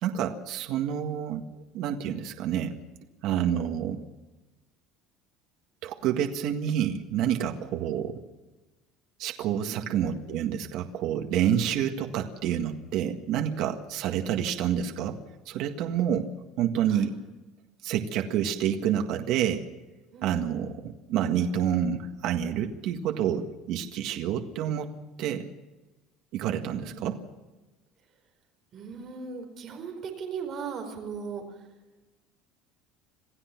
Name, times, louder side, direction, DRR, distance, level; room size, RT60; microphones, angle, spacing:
voice 1, 0.0-1.5 1.7-2.8 3.2-4.0 5.8-8.2 9.2-15.2 15.5-16.3 16.6-17.1 17.8-19.7 20.2-24.9 25.2-25.5 26.3-27.2, right 9 dB, 55° right, 4 dB, 1.8 m, -28 dB
voice 2, 20.1-20.7 26.6-27.2 28.7-31.4, right 6 dB, 30° right, 3 dB, 4.8 m, -38 dB
28.0 x 16.0 x 6.0 m, 1.1 s
cardioid pair, 180°, 0 cm